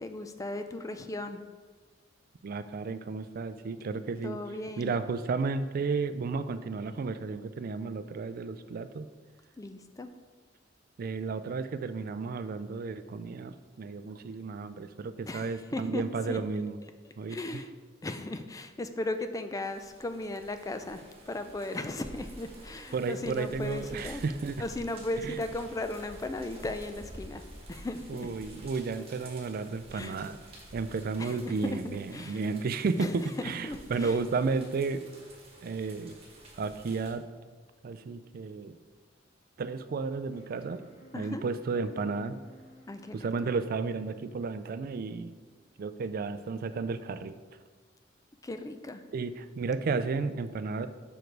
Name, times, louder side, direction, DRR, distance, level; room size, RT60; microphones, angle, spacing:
voice 1, 0.0-1.4 4.2-4.9 9.6-10.1 15.2-16.0 16.3-16.4 17.3-17.7 18.0-24.2 24.6-27.4 27.7-28.3 29.9-30.2 31.2-32.4 33.0-33.3 33.6-34.1 41.1-41.5 42.9-43.3 48.4-49.0, left 2 dB, 20° left, 8 dB, 0.4 m, -36 dB
voice 2, 2.4-4.4 4.8-9.1 11.0-16.8 17.2-17.6 22.9-24.6 25.2-25.4 28.1-30.4 30.7-35.0 35.6-36.1 36.6-37.3 37.8-38.8 39.6-40.8 41.1-42.4 43.1-45.3 45.8-47.4 49.1-50.9, right 4 dB, 50° right, 12 dB, 0.4 m, -33 dB
sound 1, 19.6-37.1, right 1 dB, 30° right, 1.4 m, -50 dB
sound 2, 40.3-46.2, equal, 35° left, 1.2 m, -59 dB
6.2 x 5.0 x 4.6 m, 1.4 s
head